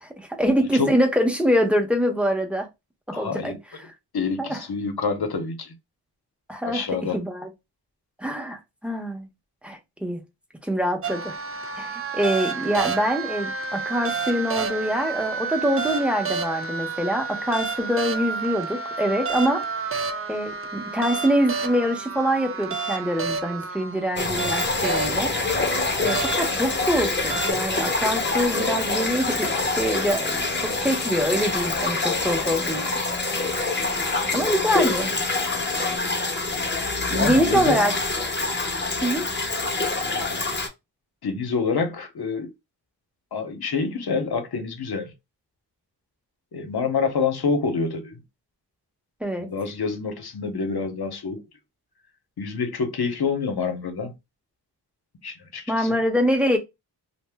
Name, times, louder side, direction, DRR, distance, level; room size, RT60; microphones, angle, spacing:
voice 1, 0.0-2.7 3.2-3.5 3.8-3.9 4.4-4.6 6.5-6.9 7.1-7.5 8.2-9.3 9.6-10.2 10.6-11.3 11.8-19.6 20.3-25.3 26.0-32.8 34.3-35.1 37.1-37.9 39.0-39.2 49.2-49.5 55.7-56.6, equal, 5° right, 0.8 m, -24 dB
voice 2, 3.1-3.6 4.1-5.7 6.6-7.2 34.1-34.6 37.1-37.8 41.2-42.5 43.3-45.1 46.5-48.2 49.4-51.4 52.4-54.1 55.2-55.9, left 5 dB, 65° left, 0.8 m, -27 dB
sound 1, 11.0-27.5, right 5 dB, 35° right, 0.4 m, -30 dB
sound 2, 24.2-40.7, left 3 dB, 25° left, 0.8 m, -25 dB
2.6 x 2.1 x 3.4 m
cardioid pair, 55°, 42 cm